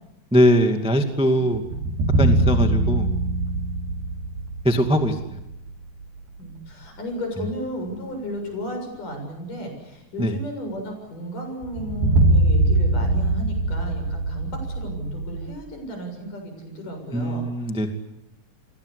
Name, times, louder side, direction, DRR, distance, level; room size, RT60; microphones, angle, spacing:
voice 1, 0.3-1.6 2.2-3.1 4.6-5.4 10.2-10.3 17.1-17.9, equal, 5° right, 5 dB, 1.1 m, -21 dB
sound 1, 1.5-6.2 6.5-6.6 11.6-15.5, right 2 dB, 75° right, 4.2 m, -23 dB
voice 2, 6.4-17.5, equal, 60° left, 4 dB, 8.7 m, -34 dB
30.0 x 22.5 x 8.4 m, 0.90 s
omnidirectional pair, 4.2 m